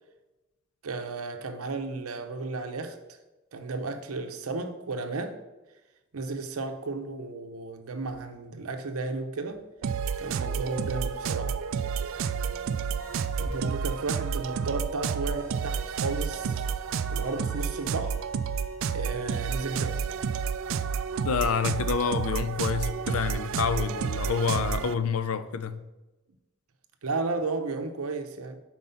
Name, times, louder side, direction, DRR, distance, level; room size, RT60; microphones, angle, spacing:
voice 1, 0.8-3.2 3.5-5.4 6.1-9.6 10.2-11.6 13.4-16.6 17.1-18.2 18.9-20.1 27.0-28.6, right 3 dB, 85° right, 0.7 m, -33 dB
sound 1, 7.2-15.1 16.2-17.9, equal, 40° left, 1.6 m, -49 dB
sound 2, 9.8-24.9, right 6 dB, 65° right, 0.3 m, -30 dB
sound 3, 13.0-13.6 14.3-14.6 15.3-19.9 21.6-21.7 21.9-22.0 22.3-25.7, left 2 dB, 65° left, 2.1 m, -57 dB
voice 2, 21.2-25.8, left 6 dB, 85° left, 0.5 m, -28 dB
5.4 x 4.4 x 5.6 m
head